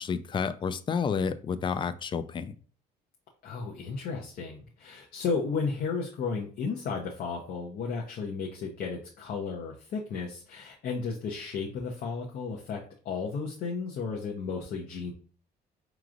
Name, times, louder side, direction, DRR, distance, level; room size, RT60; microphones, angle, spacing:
voice 1, 0.0-2.5, left 6 dB, 30° left, 0.4 m, -30 dB
voice 2, 3.4-12.8 13.0-15.1, left 5 dB, 60° left, 0.7 m, -33 dB
5.0 x 3.0 x 2.5 m
cardioid pair, 110°, 17 cm